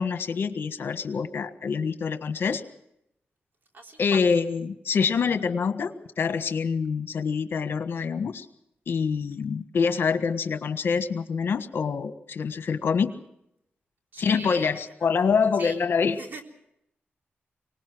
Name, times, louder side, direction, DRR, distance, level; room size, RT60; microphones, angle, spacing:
voice 1, 0.0-2.6 4.0-8.5 8.9-13.1 14.2-16.2, left 5 dB, 70° left, 10 dB, 1.4 m, -26 dB
voice 2, 3.7-4.2 14.1-15.1 15.6-15.8 16.2-16.4, right 2 dB, 55° right, 3 dB, 3.8 m, -41 dB
24.5 x 19.5 x 6.2 m, 0.81 s
wide cardioid pair, 100°, 4 cm